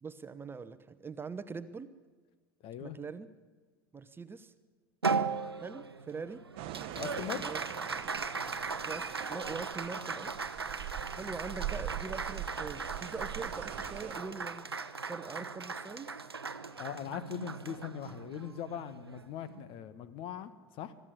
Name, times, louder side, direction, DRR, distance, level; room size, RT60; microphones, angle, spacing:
voice 1, 0.0-1.9 2.8-3.3 3.9-4.5 5.6-6.4 7.4-7.6 8.9-10.3 11.1-14.7 15.1-16.1, right 5 dB, 15° right, 13 dB, 1.0 m, -42 dB
voice 2, 2.6-3.0 6.9-7.4 16.8-20.9, left 10 dB, 45° left, 14 dB, 1.3 m, -41 dB
Applause, 5.0-19.7, right 4 dB, 85° right, 0.8 m, -38 dB
sound 1, 6.6-14.2, right 13 dB, 50° right, 0.9 m, -43 dB
22.5 x 13.5 x 8.7 m, 1.4 s
figure-of-eight pair, 75°, 13 cm